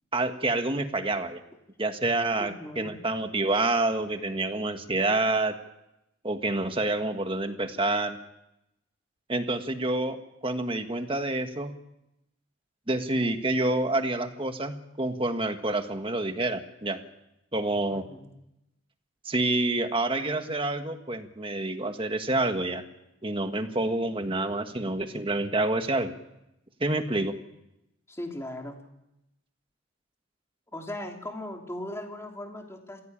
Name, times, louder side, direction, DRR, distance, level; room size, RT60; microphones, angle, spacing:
voice 1, 0.1-1.4 1.8-5.6 6.2-8.2 9.3-11.7 12.9-17.0 17.5-18.0 19.2-22.8 23.2-26.1 26.8-27.3, right 2 dB, 25° right, 7 dB, 1.7 m, -28 dB
voice 2, 2.4-3.0 17.9-18.3 28.1-28.8 30.7-33.0, left 1 dB, 15° left, 2 dB, 3.1 m, -38 dB
26.5 x 16.5 x 8.8 m, 0.89 s
head